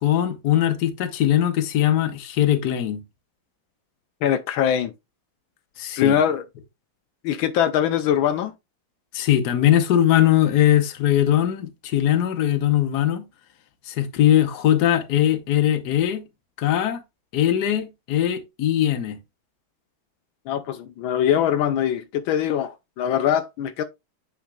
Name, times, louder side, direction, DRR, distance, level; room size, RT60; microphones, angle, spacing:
voice 1, 0.0-3.0 5.8-6.2 9.1-13.2 13.9-16.2 16.6-17.0 17.3-19.2, left 11 dB, 60° left, 1.4 m, -20 dB
voice 2, 4.2-4.9 6.0-6.4 7.2-8.5 20.5-23.8, left 9 dB, 80° left, 1.4 m, -22 dB
9.2 x 5.0 x 2.3 m
omnidirectional pair, 2.2 m